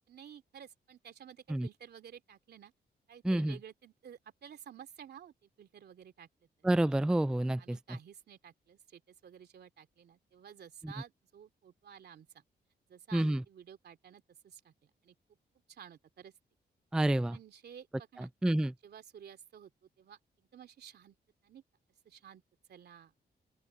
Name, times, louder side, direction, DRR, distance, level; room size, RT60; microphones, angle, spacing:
voice 1, 0.1-2.7 3.1-6.3 7.6-12.4 12.9-15.1 15.7-16.3 17.3-18.3 18.8-19.7 20.0-21.2 21.4-21.6 22.0-22.4 22.7-23.1, right 8 dB, 70° right, 2.9 m, -53 dB
voice 2, 3.2-3.5 6.6-7.8 13.1-13.4 16.9-17.4 18.4-18.7, right 1 dB, 5° right, 0.4 m, -28 dB
open air
wide cardioid pair, 120°, 17 cm